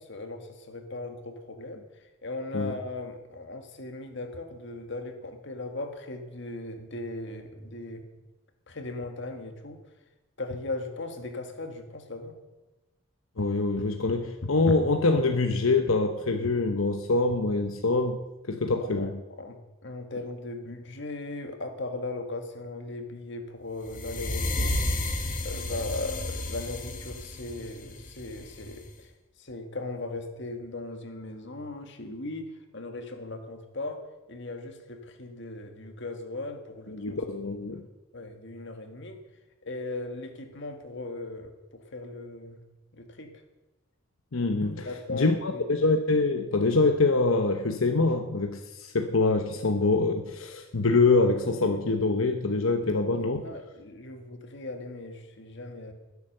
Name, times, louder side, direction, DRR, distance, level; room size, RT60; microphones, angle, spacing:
voice 1, 0.0-1.9 2.2-8.1 8.7-9.8 10.4-12.4 18.7-19.1 19.4-24.8 25.4-29.1 29.4-32.5 32.7-34.0 34.3-37.6 38.1-39.2 39.6-42.6 42.9-43.3 44.8-45.8 53.2-55.9, left 2 dB, 60° left, 6 dB, 1.9 m, -38 dB
voice 2, 13.4-18.2 18.5-19.2 36.9-37.8 44.3-53.5, left 3 dB, 85° left, 5 dB, 1.0 m, -25 dB
sound 1, 23.9-28.9, left 1 dB, 40° left, 2.0 m, -32 dB
21.0 x 8.2 x 6.7 m, 1.1 s
head